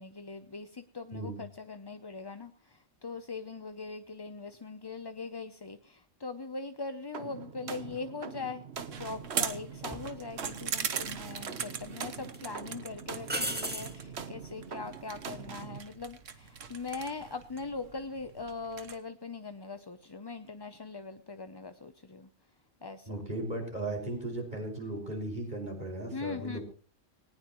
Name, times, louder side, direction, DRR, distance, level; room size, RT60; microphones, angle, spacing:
voice 1, 0.0-22.3 22.8-23.2 26.1-26.6, left 4 dB, 25° left, 8 dB, 0.5 m, -41 dB
sound 1, 7.1-15.8, right 6 dB, 60° right, 1.3 m, -43 dB
sound 2, 8.8-19.0, right 7 dB, 80° right, 1.5 m, -40 dB
sound 3, 9.9-10.1 11.2-11.8 12.2-12.4 13.3-14.0 17.1-17.4, right 1 dB, 10° right, 1.8 m, -35 dB
voice 2, 23.1-26.6, right 2 dB, 35° right, 1 dB, 5.8 m, -36 dB
19.5 x 19.0 x 3.0 m, 0.37 s
omnidirectional pair, 1.3 m